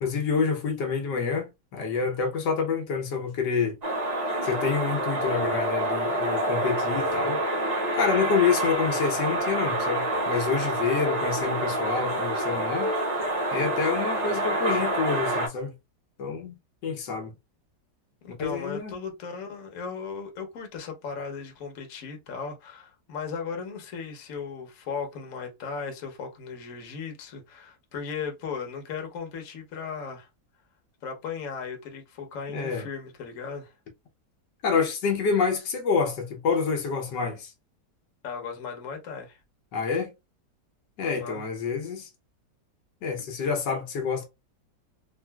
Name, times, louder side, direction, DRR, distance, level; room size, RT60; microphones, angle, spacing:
voice 1, 0.0-3.8 4.4-7.4 7.9-12.9 13.5-15.7 16.2-16.6 16.8-17.3 18.4-18.9 32.5-32.9 34.6-37.5 39.7-40.1 41.0-42.1 43.0-44.2, left 5 dB, 80° left, 1.4 m, -27 dB
sound 1, 3.8-15.5, right 1 dB, 75° right, 0.3 m, -27 dB
voice 2, 18.2-30.3 31.0-33.7 38.2-39.4 41.0-41.4, left 5 dB, 55° left, 1.1 m, -36 dB
3.7 x 2.4 x 2.2 m
omnidirectional pair, 1.9 m